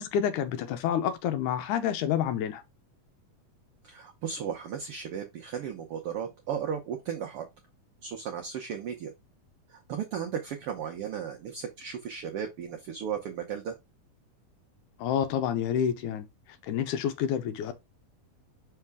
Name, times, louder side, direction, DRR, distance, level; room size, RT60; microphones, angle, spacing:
voice 1, 0.0-2.6 15.0-16.3 16.6-17.7, left 9 dB, 80° left, 2.1 m, -28 dB
voice 2, 3.8-7.5 8.0-9.1 9.7-13.7, right 8 dB, 90° right, 1.2 m, -35 dB
5.6 x 4.8 x 3.5 m
omnidirectional pair, 3.7 m